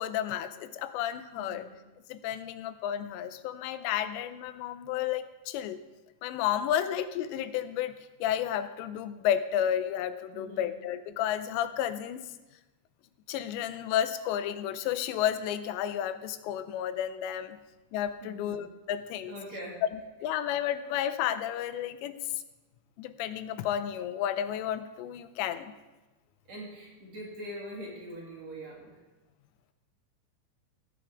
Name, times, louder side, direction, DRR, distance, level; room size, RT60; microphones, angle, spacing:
voice 1, 0.0-1.7 2.1-5.8 6.2-7.9 8.2-12.2 13.3-17.6 17.9-19.3 20.2-22.2 23.0-25.7, left 10 dB, 90° left, 12 dB, 2.9 m, -32 dB
voice 2, 1.4-1.7 10.3-10.7 18.2-18.5 19.3-19.8 26.5-28.9, equal, 45° right, -4 dB, 3.0 m, -42 dB
16.5 x 9.1 x 3.5 m, 1.1 s
omnidirectional pair, 5.0 m